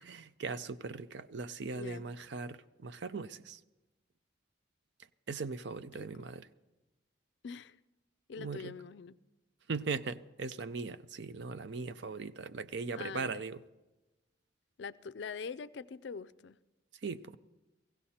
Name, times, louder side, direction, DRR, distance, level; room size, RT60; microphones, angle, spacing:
voice 1, 0.1-3.6 5.3-6.5 8.4-8.8 9.7-13.6 17.0-17.4, right 4 dB, 65° right, 0.5 m, -39 dB
voice 2, 1.7-2.1 6.0-6.1 7.4-7.8 8.3-9.2 13.0-13.4 14.8-16.6, left 5 dB, 65° left, 0.4 m, -43 dB
16.5 x 16.0 x 4.3 m
head